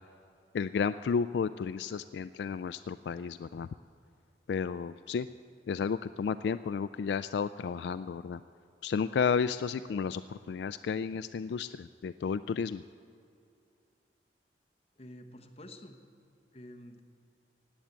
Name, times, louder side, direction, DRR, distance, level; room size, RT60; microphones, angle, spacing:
voice 1, 0.5-3.7 4.5-5.3 5.7-8.4 8.8-12.8, left 6 dB, 75° left, 13 dB, 0.3 m, -32 dB
voice 2, 15.0-16.0 16.5-17.0, left 1 dB, 35° left, 4 dB, 1.1 m, -49 dB
17.5 x 8.1 x 8.8 m, 2.6 s
head